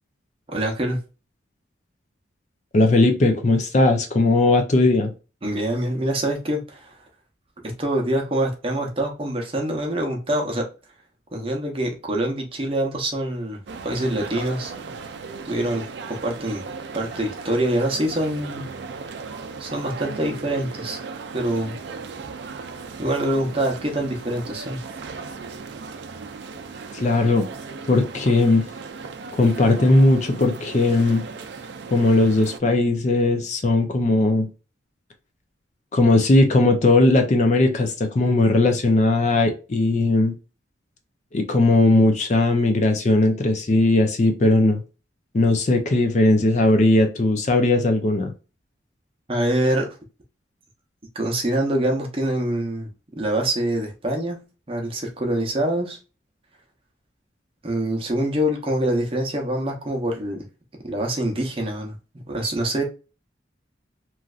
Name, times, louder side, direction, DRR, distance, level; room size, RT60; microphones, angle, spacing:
voice 1, 0.5-1.0 5.4-7.0 7.8-10.6 11.3-14.7 15.4-16.6 16.9-18.6 19.6-21.0 21.3-21.8 23.0-24.8 49.3-49.9 51.1-52.9 53.2-54.4 54.7-56.0 57.6-60.5 60.8-62.0 62.3-62.8, right 1 dB, 30° right, 0.7 m, -25 dB
voice 2, 2.7-5.1 26.9-27.5 27.9-28.6 29.4-31.2 31.9-34.5 35.9-40.3 41.3-44.8 45.3-48.3, left 2 dB, 40° left, 0.4 m, -18 dB
sound 1, 13.7-32.6, right 4 dB, 65° right, 0.4 m, -37 dB
3.1 x 2.5 x 2.3 m
head